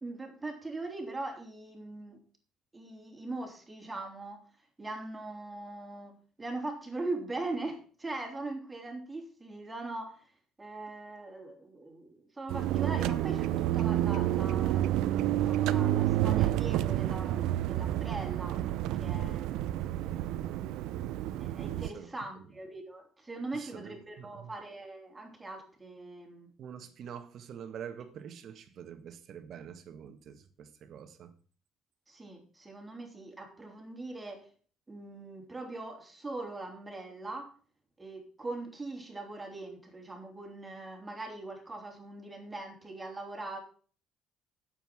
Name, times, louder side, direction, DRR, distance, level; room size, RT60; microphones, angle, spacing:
voice 1, 0.0-2.2 2.7-4.4 4.8-10.3 10.6-18.6 19.0-19.6 21.4-26.5 32.1-34.5 34.9-37.5 38.0-43.6, right 2 dB, 15° right, 3.5 m, -41 dB
sound 1, 12.5-21.9, right 13 dB, 75° right, 0.6 m, -29 dB
voice 2, 23.5-24.5 26.6-31.3, right 8 dB, 55° right, 1.6 m, -46 dB
9.3 x 7.9 x 6.1 m
cardioid pair, 110°, 0 cm